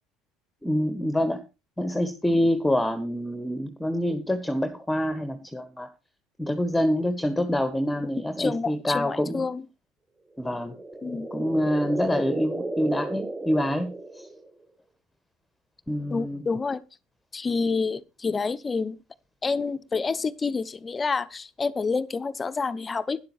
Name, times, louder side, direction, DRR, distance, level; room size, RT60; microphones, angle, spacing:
voice 1, 0.6-1.4 1.8-5.9 6.4-9.4 10.4-10.8 11.3-14.3 15.9-16.4, equal, 5° left, 1.5 m, -26 dB
voice 2, 8.4-9.6 11.0-11.3 16.1-16.8 17.3-19.0 19.4-23.2, left 4 dB, 25° left, 1.0 m, -28 dB
sound 1, 10.4-14.6, right 2 dB, 10° right, 1.4 m, -34 dB
12.5 x 10.5 x 4.4 m
figure-of-eight pair, 65°, 0 cm